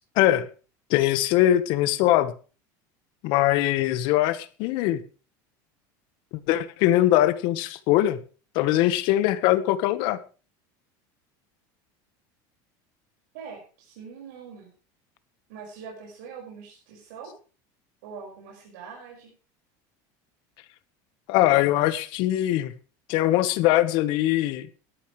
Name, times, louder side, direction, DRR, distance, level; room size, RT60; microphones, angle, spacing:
voice 1, 0.9-2.3 3.2-5.0 6.5-8.2 8.5-10.2 21.3-22.7 23.1-24.7, left 14 dB, 55° left, 1.3 m, -22 dB
voice 2, 13.3-14.7 15.5-17.3 18.0-19.3, right 6 dB, 85° right, 5.5 m, -43 dB
18.0 x 12.5 x 3.2 m
cardioid pair, 160°, 10 cm